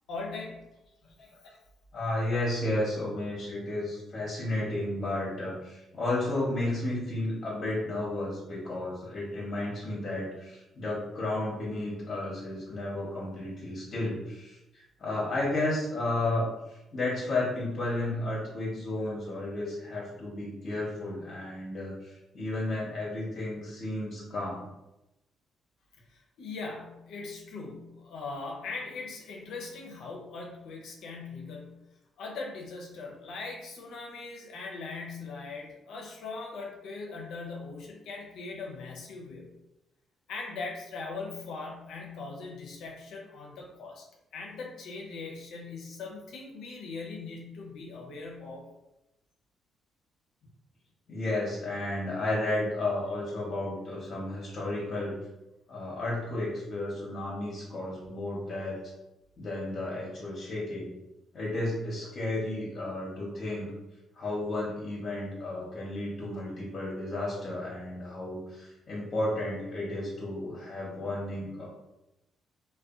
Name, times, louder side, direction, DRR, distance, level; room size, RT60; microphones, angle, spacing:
voice 1, 0.1-0.6 1.3-1.6 26.1-31.8 32.2-39.5 40.3-44.1 44.3-48.7 66.3-66.4, left 3 dB, 80° left, -1 dB, 0.5 m, -40 dB
voice 2, 1.9-24.6 51.1-55.1 55.7-58.8 59.4-60.9 61.3-63.7 64.2-71.6, left 2 dB, 45° left, -5 dB, 0.8 m, -33 dB
2.5 x 2.1 x 2.4 m, 0.93 s
cardioid pair, 90°, 0 cm